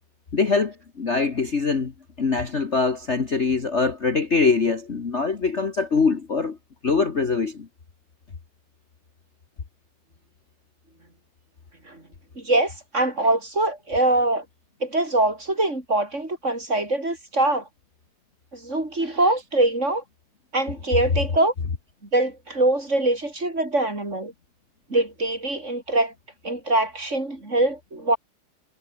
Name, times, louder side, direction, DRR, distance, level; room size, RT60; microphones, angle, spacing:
voice 1, 0.3-1.9 2.2-6.6 6.8-7.7, left 4 dB, 35° left, 1.7 m, -23 dB
voice 2, 12.4-14.4 14.8-17.7 18.5-20.0 20.5-21.5 22.1-24.3 24.9-26.1 26.4-28.2, right 2 dB, 30° right, 5.2 m, -23 dB
omnidirectional pair, 2.4 m